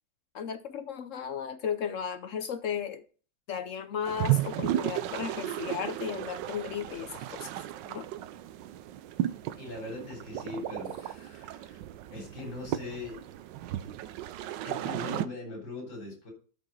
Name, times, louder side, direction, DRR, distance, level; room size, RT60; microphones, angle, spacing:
voice 1, 0.3-3.0 3.5-7.5 7.9-8.1, left 7 dB, 65° left, 0.7 m, -35 dB
sound 1, 4.1-15.3, right 13 dB, 75° right, 1.2 m, -34 dB
voice 2, 9.2-11.8 12.1-13.2 13.8-13.9 14.6-16.3, left 2 dB, 85° left, 4.4 m, -41 dB
12.5 x 5.2 x 4.0 m
omnidirectional pair, 2.0 m